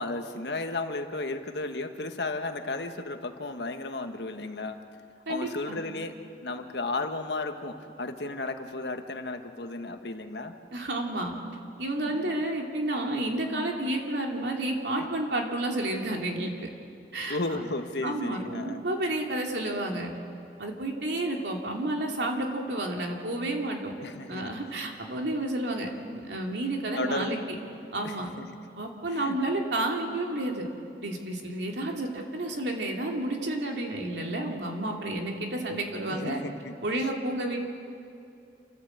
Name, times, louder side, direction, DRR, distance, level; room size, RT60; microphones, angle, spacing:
voice 1, 0.0-4.8 5.3-6.2 6.4-10.5 12.0-12.4 14.9-15.1 17.3-18.8 24.0-24.5 27.0-27.4 28.0-28.5 29.1-29.4 36.1-36.7 37.0-37.1, left 2 dB, 80° left, 6 dB, 1.4 m, -34 dB
voice 2, 5.3-5.8 10.7-11.3 11.8-16.7 17.1-17.7 18.0-20.1 20.6-23.9 24.3-27.4 27.9-28.3 28.8-30.6 31.0-36.4 36.8-37.6, right 1 dB, 85° right, 1 dB, 2.8 m, -31 dB
28.5 x 14.0 x 8.1 m, 2.6 s
head